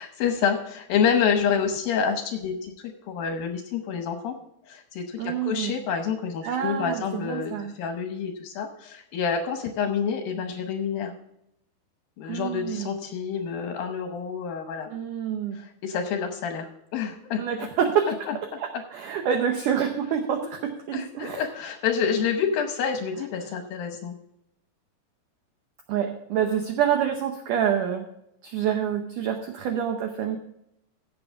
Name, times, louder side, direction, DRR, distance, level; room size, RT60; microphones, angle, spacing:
voice 1, 0.0-4.4 4.7-11.1 12.2-14.9 15.8-17.4 18.3-18.4 20.9-24.1, left 7 dB, 75° left, 5 dB, 2.3 m, -28 dB
voice 2, 5.2-5.7 6.4-7.7 12.3-12.9 14.9-15.6 17.4-18.1 18.6-21.5 25.9-28.0 28.4-30.4, right 8 dB, 85° right, 5 dB, 1.8 m, -27 dB
15.5 x 7.4 x 3.5 m, 0.79 s
omnidirectional pair, 5.0 m